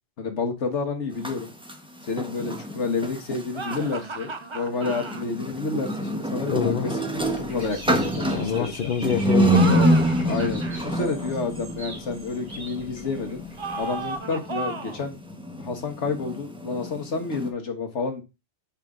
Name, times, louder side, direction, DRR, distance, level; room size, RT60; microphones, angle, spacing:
voice 1, 0.2-1.5 2.1-7.0 7.4-9.0 10.3-13.4 13.8-15.2 15.6-18.2, left 4 dB, 85° left, 1.7 m, -30 dB
sound 1, 1.1-3.9 4.8-17.5, right 1 dB, 5° right, 0.8 m, -27 dB
sound 2, 3.5-5.2 9.4-10.8 13.6-15.1, right 3 dB, 35° right, 0.6 m, -34 dB
voice 2, 6.5-6.9 8.3-10.0, left 7 dB, 55° left, 0.9 m, -26 dB
Dog / Bird, 7.2-14.2, equal, 50° right, 3.0 m, -43 dB
7.6 x 5.2 x 3.7 m
omnidirectional pair, 1.2 m